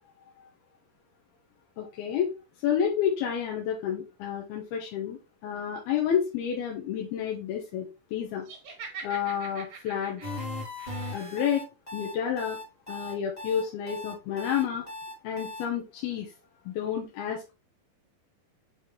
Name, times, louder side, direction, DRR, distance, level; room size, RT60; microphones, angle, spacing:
voice 1, 1.8-2.3 2.6-8.5 9.0-10.2 11.1-11.6 11.9-12.6 12.9-14.9 15.2-16.3 16.7-17.5, left 8 dB, 75° left, 1 dB, 2.7 m, -30 dB
Laughter, 8.4-11.4, right 5 dB, 55° right, 1.9 m, -44 dB
sound 1, 10.2-15.6, left 2 dB, 15° left, 1.4 m, -38 dB
7.4 x 4.1 x 3.3 m, 0.27 s
omnidirectional pair, 5.0 m